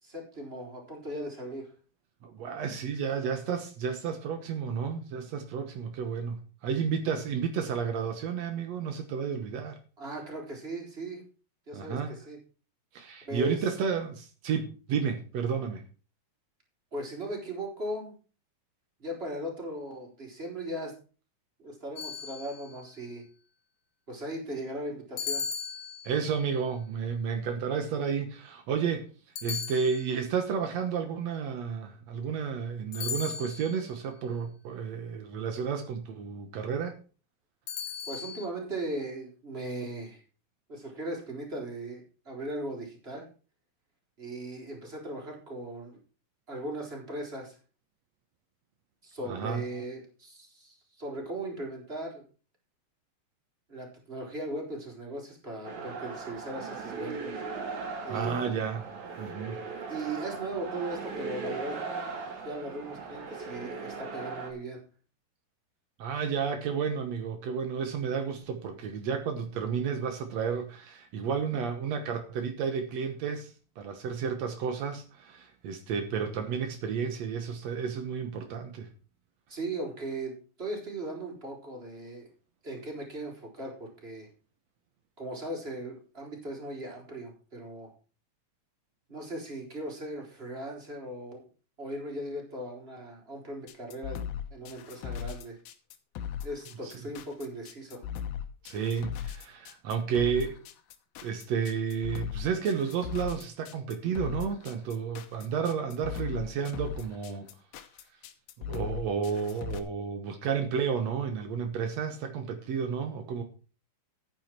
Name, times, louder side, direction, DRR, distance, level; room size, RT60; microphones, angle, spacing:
voice 1, 0.0-1.7 10.0-11.2 11.7-12.4 13.3-13.6 16.9-18.1 19.0-20.9 21.6-23.2 24.1-25.4 38.1-40.2 40.7-43.2 44.2-46.0 46.5-47.6 49.0-52.2 53.7-57.4 58.0-58.6 59.7-61.8 62.4-64.8 79.5-82.3 82.6-84.3 85.2-87.9 89.1-91.4 91.8-94.2 94.5-95.6 96.4-98.0, right 1 dB, 15° right, 3.5 m, -38 dB
voice 2, 2.2-9.8 11.7-12.1 12.9-15.8 26.0-29.1 29.4-37.0 49.2-49.6 58.1-58.8 59.2-59.6 66.0-78.9 96.8-96.9 98.6-100.6 101.2-107.5 108.7-113.4, right 6 dB, 85° right, 1.5 m, -32 dB
sound 1, 22.0-22.9 25.2-26.4 29.4-30.4 32.9-33.9 37.7-38.5, left 6 dB, 65° left, 1.2 m, -37 dB
sound 2, 55.6-64.5, right 4 dB, 50° right, 3.1 m, -38 dB
sound 3, 93.7-109.8, left 9 dB, 80° left, 3.2 m, -38 dB
12.0 x 9.5 x 4.5 m
omnidirectional pair, 4.8 m